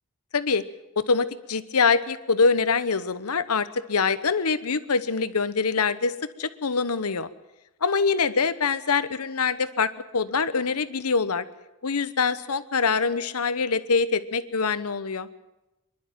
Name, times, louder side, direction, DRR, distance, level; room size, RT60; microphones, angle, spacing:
voice 1, 1.0-7.3 7.8-11.4 11.8-15.3, left 5 dB, 85° left, 14 dB, 1.0 m, -24 dB
25.5 x 11.5 x 9.0 m, 0.97 s
head